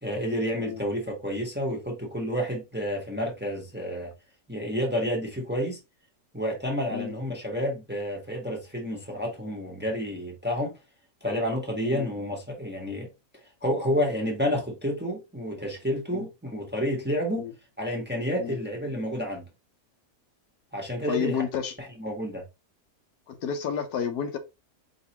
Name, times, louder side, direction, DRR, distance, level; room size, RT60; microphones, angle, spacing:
voice 1, 0.0-4.1 4.5-5.8 6.3-10.8 11.2-13.1 13.6-17.4 17.8-19.5 20.7-21.4 21.8-22.4, equal, 10° right, 1.0 m, -30 dB
voice 2, 21.1-21.7 23.3-24.4, left 7 dB, 80° left, 1.3 m, -30 dB
5.1 x 3.0 x 2.9 m
omnidirectional pair, 1.7 m